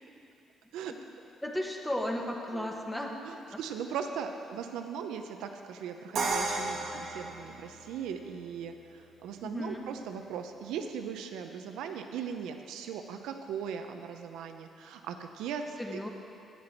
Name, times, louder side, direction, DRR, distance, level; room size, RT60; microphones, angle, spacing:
voice 1, 1.4-3.1 3.5-3.6 9.4-9.9 15.8-16.1, left 1 dB, 10° left, 0 dB, 1.5 m, -34 dB
voice 2, 2.5-2.8 3.2-16.0, right 7 dB, 90° right, 6 dB, 0.7 m, -39 dB
Crash cymbal, 6.1-8.1, right 3 dB, 70° right, 1.3 m, -33 dB
12.5 x 9.4 x 4.5 m, 2.6 s
cardioid pair, 90°, 0 cm